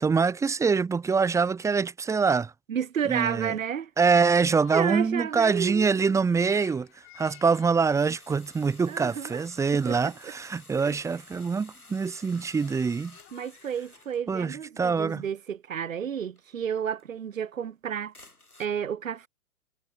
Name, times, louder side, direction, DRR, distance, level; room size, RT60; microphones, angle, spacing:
voice 1, 0.0-2.5 3.1-3.5 4.0-6.9 7.2-13.2 14.3-15.2, right 5 dB, 5° right, 1.1 m, -24 dB
voice 2, 2.7-3.9 4.7-5.9 8.9-9.4 9.9-10.0 10.2-10.3 10.8-11.0 13.3-18.1 18.6-19.3, right 8 dB, 65° right, 3.7 m, -31 dB
sound 1, 4.3-14.2, left 19 dB, 30° left, 6.5 m, -56 dB
sound 2, 6.0-6.1 7.1-7.6 7.9-14.2 16.4-16.5 17.0-17.1 18.1-18.7, left 2 dB, 90° left, 7.0 m, -53 dB
figure-of-eight pair, 115°, 43 cm